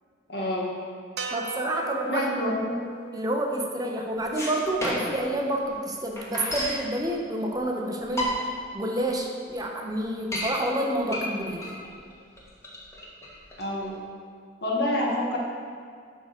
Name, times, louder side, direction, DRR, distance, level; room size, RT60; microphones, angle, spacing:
voice 1, 0.3-0.7 2.1-2.7 11.8-12.0 13.6-14.0 14.6-15.4, left 1 dB, 60° left, -2 dB, 1.7 m, -27 dB
sound 1, 1.2-5.5, right 5 dB, 65° right, 0.7 m, -40 dB
voice 2, 1.3-2.3 3.1-8.3 8.7-11.8, right 1 dB, 20° right, 1 dB, 0.8 m, -29 dB
sound 2, 4.2-5.3 5.6-5.7 5.9-6.8 7.6-7.7 8.0-8.7 9.1-9.2 9.5-9.6 10.0-10.5 11.1-14.0, equal, 15° left, 1.7 m, -31 dB
11.5 x 3.9 x 6.5 m, 2.2 s
head